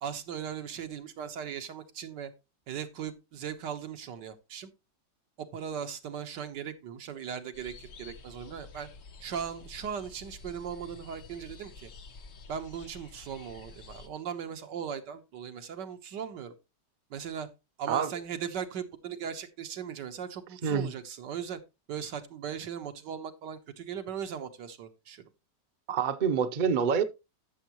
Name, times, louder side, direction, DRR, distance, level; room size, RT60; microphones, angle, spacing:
voice 1, 0.0-2.3 2.7-4.7 5.4-8.9 9.2-11.9 12.5-16.6 17.1-17.5 17.8-21.6 21.9-25.2, right 8 dB, 80° right, 1.7 m, -38 dB
sound 1, 7.5-14.1, left 4 dB, 85° left, 2.0 m, -50 dB
voice 2, 20.6-20.9 25.9-27.0, right 7 dB, 45° right, 0.6 m, -26 dB
13.0 x 7.1 x 3.0 m
omnidirectional pair, 1.9 m